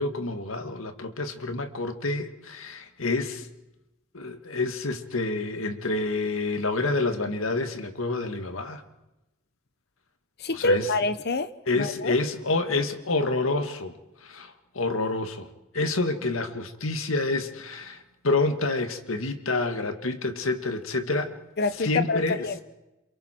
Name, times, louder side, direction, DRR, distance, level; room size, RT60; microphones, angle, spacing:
voice 1, 0.0-3.5 4.1-8.8 10.5-10.9 11.7-13.9 14.2-15.5 15.7-21.3 21.7-22.5, left 2 dB, 85° left, 1.9 m, -28 dB
voice 2, 10.4-11.5 11.7-12.1 21.6-22.6, left 3 dB, 55° left, 0.9 m, -26 dB
28.0 x 28.0 x 4.5 m
head